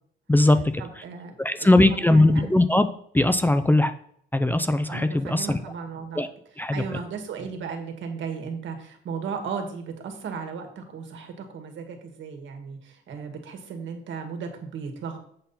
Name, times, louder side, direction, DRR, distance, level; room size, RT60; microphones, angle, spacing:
voice 1, 0.3-0.6 1.4-2.9 3.1-3.9 4.3-5.6 6.2-6.3 6.6-6.8, left 2 dB, 10° left, 10 dB, 0.5 m, -19 dB
voice 2, 0.8-2.5 4.9-6.2 6.7-15.2, right 5 dB, 75° right, 5 dB, 1.8 m, -35 dB
7.9 x 5.5 x 4.2 m, 0.68 s
cardioid pair, 90°, 20 cm